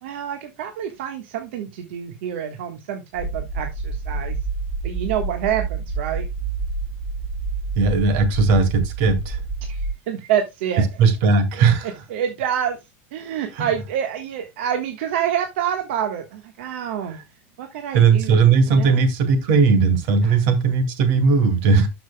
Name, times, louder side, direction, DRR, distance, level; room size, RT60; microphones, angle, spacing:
voice 1, 0.0-4.4 4.8-6.3 9.6-10.9 12.1-12.8 13.1-17.2 17.6-19.0 20.2-20.4, right 9 dB, 65° right, 1.4 m, -27 dB
sound 1, 3.1-9.9, right 4 dB, 10° right, 4.8 m, -28 dB
voice 2, 7.8-9.4 11.0-11.9 13.6-13.7 17.9-21.9, right 4 dB, 45° right, 2.2 m, -17 dB
12.5 x 5.9 x 2.2 m
supercardioid pair, 180°, 7 cm